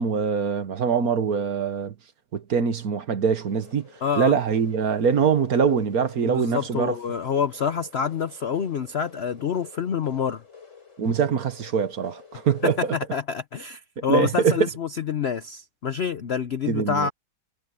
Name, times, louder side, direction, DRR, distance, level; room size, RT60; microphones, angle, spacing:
voice 1, 0.0-1.9 2.3-3.9 4.2-6.9 11.0-12.9 14.1-14.6 16.7-17.1, right 6 dB, 55° right, 1.6 m, -23 dB
sound 1, 3.3-13.0, left 6 dB, 40° left, 6.0 m, -49 dB
voice 2, 4.0-4.4 6.2-10.4 12.6-17.1, left 7 dB, 70° left, 0.6 m, -27 dB
omnidirectional pair, 2.1 m